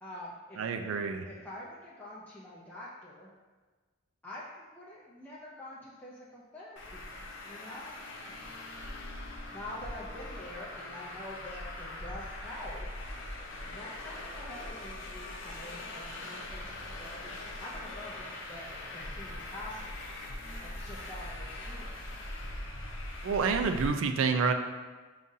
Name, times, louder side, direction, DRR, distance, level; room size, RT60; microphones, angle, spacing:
voice 1, 0.0-0.6 1.2-3.3 4.2-7.1 7.4-8.5 9.5-12.9 13.7-17.3 17.6-20.0 20.6-21.9, left 1 dB, 10° left, -8 dB, 0.4 m, -46 dB
voice 2, 0.6-1.3 23.2-24.5, right 5 dB, 75° right, 6 dB, 0.3 m, -28 dB
Traffic noise roadway noise, 6.8-23.9, left 1 dB, 70° left, 0.6 m, -41 dB
5.4 x 2.4 x 2.6 m, 1.3 s
head